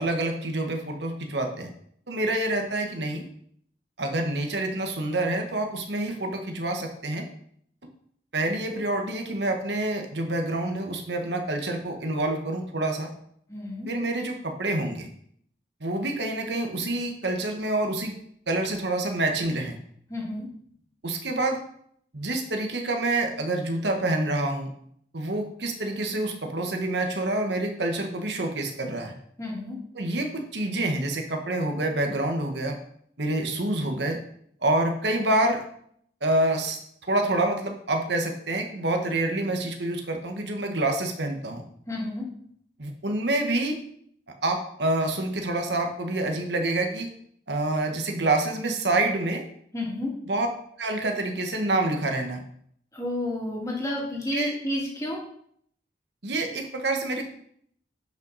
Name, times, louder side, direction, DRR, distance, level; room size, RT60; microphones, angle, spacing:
voice 1, 0.0-1.7 2.1-3.2 4.0-7.2 8.3-13.1 13.9-15.1 15.8-18.1 18.5-19.8 21.0-21.6 22.1-24.7 25.1-29.1 29.9-32.8 33.2-34.2 34.6-35.6 36.2-41.6 42.8-43.8 44.4-47.1 47.5-49.4 50.3-50.5 50.8-52.4 54.3-54.5 56.2-57.3, right 2 dB, 75° right, 3 dB, 1.5 m, -27 dB
voice 2, 13.5-13.9 20.1-20.5 29.4-29.8 41.9-42.3 49.7-50.1 52.9-55.2, left 1 dB, 15° left, -3 dB, 2.5 m, -30 dB
11.0 x 5.9 x 4.1 m, 0.66 s
head